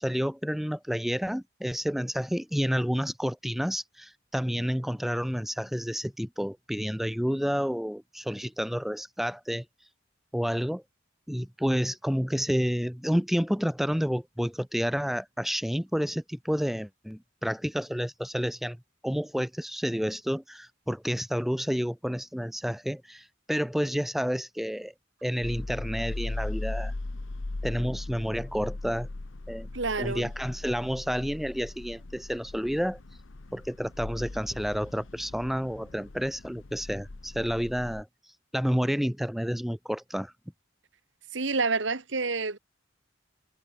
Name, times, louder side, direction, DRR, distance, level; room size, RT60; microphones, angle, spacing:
voice 1, 0.0-9.6 10.3-10.8 11.3-18.8 19.0-24.9 25.2-26.9 27.6-29.1 29.5-29.7 30.0-33.0 33.5-38.1 38.5-40.3, equal, ahead, 0.6 m, -30 dB
sound 1, 25.4-38.0, left 2 dB, 80° left, 1.1 m, -38 dB
voice 2, 29.7-30.3 41.3-42.6, right 4 dB, 70° right, 1.8 m, -28 dB
head